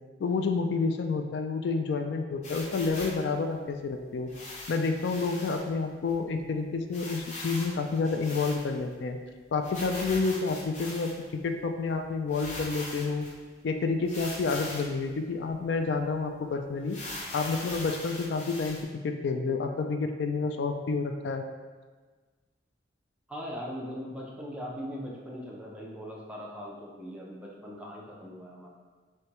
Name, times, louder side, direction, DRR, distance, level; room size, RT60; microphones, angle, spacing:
voice 1, 0.2-4.3 4.7-9.2 9.5-11.1 11.4-13.3 13.6-17.0 17.3-18.8 19.0-21.4, left 4 dB, 65° left, 5 dB, 0.3 m, -29 dB
sound 1, 2.4-3.2 4.3-5.6 6.1-6.2 6.4-6.5 6.9-8.9 9.6-11.3 11.9-12.0 12.3-13.3 14.1-15.0 15.5-15.6 16.0-16.1 16.9-18.8, left 2 dB, 40° left, 0.8 m, -41 dB
voice 2, 23.3-28.7, equal, 5° right, -4 dB, 0.6 m, -40 dB
6.4 x 2.2 x 2.9 m, 1.4 s
head